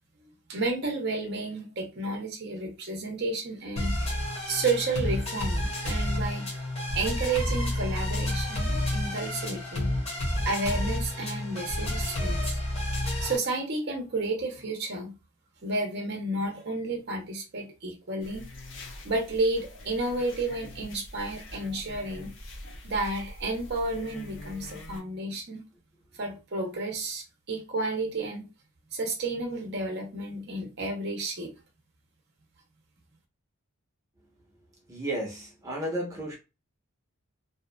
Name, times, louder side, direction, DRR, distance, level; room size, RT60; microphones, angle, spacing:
voice 1, 0.5-6.6 6.9-9.9 10.4-12.6 13.2-15.1 15.6-18.4 19.0-22.3 22.8-25.6 26.2-28.5 28.9-31.5, right 2 dB, 50° right, 0.7 m, -31 dB
sound 1, 3.8-13.4, left 1 dB, 30° left, 0.9 m, -30 dB
sound 2, 18.2-25.0, left 1 dB, 55° left, 0.6 m, -44 dB
voice 2, 34.9-36.3, right 1 dB, 15° right, 0.8 m, -33 dB
2.8 x 2.3 x 2.2 m
head